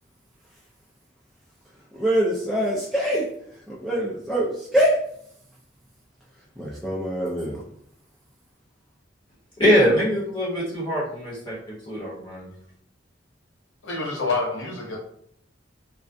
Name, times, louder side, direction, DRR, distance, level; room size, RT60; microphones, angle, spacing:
voice 1, 1.9-3.3 3.7-5.0 6.6-7.6, equal, ahead, 0.3 m, -24 dB
voice 2, 9.6-11.6 11.9-12.5, equal, 25° left, 0.9 m, -22 dB
voice 3, 13.8-15.0, left 3 dB, 75° left, 0.8 m, -27 dB
2.3 x 2.1 x 2.5 m
head